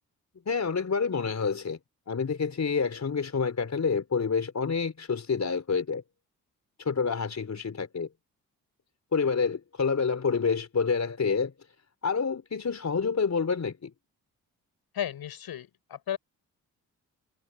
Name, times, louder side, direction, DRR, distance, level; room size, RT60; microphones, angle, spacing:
voice 1, 0.5-1.8 2.1-6.0 6.8-8.1 9.1-11.5 12.0-13.9, left 5 dB, 45° left, 4.4 m, -28 dB
voice 2, 14.9-16.2, left 10 dB, 75° left, 7.6 m, -34 dB
supercardioid pair, 50°, 38 cm